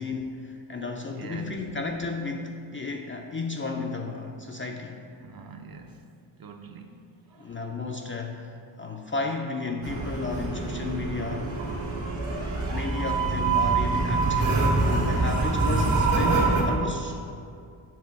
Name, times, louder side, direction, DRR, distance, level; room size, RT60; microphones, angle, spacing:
voice 1, 0.0-5.0 7.4-11.6 12.7-17.3, left 3 dB, 30° left, 2 dB, 0.4 m, -33 dB
voice 2, 1.2-1.6 5.2-6.0 6.4-7.0 7.3-7.5, right 5 dB, 45° right, 5 dB, 0.6 m, -43 dB
sound 1, 9.8-16.6, right 3 dB, 75° right, 1.7 m, -25 dB
7.5 x 3.7 x 5.8 m, 2.4 s
wide cardioid pair, 115°, 49 cm